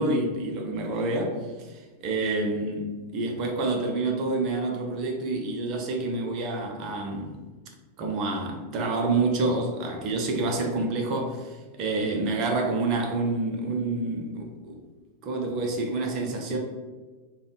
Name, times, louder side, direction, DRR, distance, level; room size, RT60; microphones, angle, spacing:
voice 1, 0.0-1.4 1.7-7.4 8.0-14.8 15.2-16.6, right 2 dB, 40° right, 1 dB, 0.6 m, -28 dB
3.4 x 2.2 x 3.8 m, 1.3 s
figure-of-eight pair, 90°, 0 cm